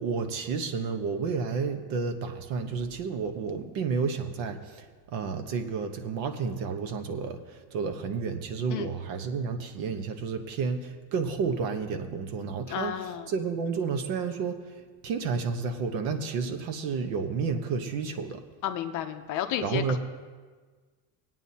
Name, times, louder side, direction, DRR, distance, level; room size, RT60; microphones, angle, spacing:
voice 1, 0.0-12.9 13.3-14.7 15.0-18.4 19.6-20.0, right 5 dB, 70° right, 7 dB, 1.1 m, -31 dB
voice 2, 12.7-13.3 18.6-20.0, left 10 dB, 40° left, 7 dB, 0.6 m, -32 dB
20.5 x 9.1 x 2.8 m, 1.4 s
cardioid pair, 170°, 48 cm